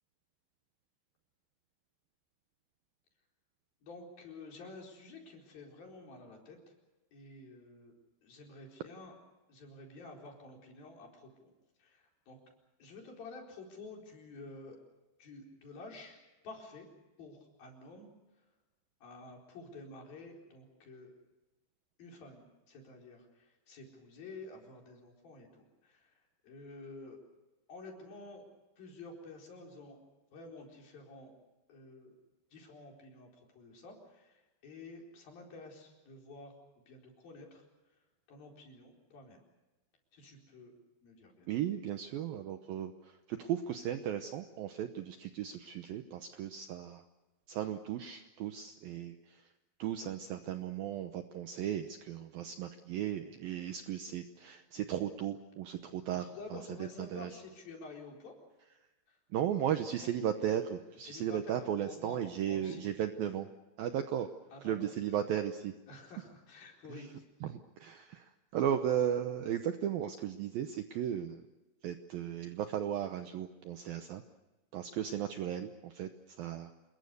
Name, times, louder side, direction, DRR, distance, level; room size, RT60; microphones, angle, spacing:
voice 1, 3.8-6.6 7.1-7.9 8.2-9.1 9.5-11.5 11.8-12.4 12.8-14.8 15.2-16.9 17.2-18.1 19.0-21.1 22.0-27.2 27.7-28.4 28.8-30.0 30.3-31.3 31.7-32.2 32.5-36.5 36.9-37.6 38.3-39.4 40.1-40.7 41.0-41.6 56.2-58.4 59.1-59.2 59.9-60.0 61.0-62.2 62.4-62.8 64.5-64.7 65.1-65.2 65.9-67.3 67.9-68.2, left 3 dB, 55° left, 0 dB, 6.0 m, -50 dB
voice 2, 41.5-47.0 47.5-49.5 49.8-57.3 59.3-63.5 63.8-64.3 64.6-65.7 66.9-67.1 67.4-71.4 71.8-74.2 74.7-76.7, right 10 dB, 75° right, 8 dB, 2.2 m, -36 dB
28.0 x 21.5 x 6.8 m, 1.1 s
omnidirectional pair, 5.2 m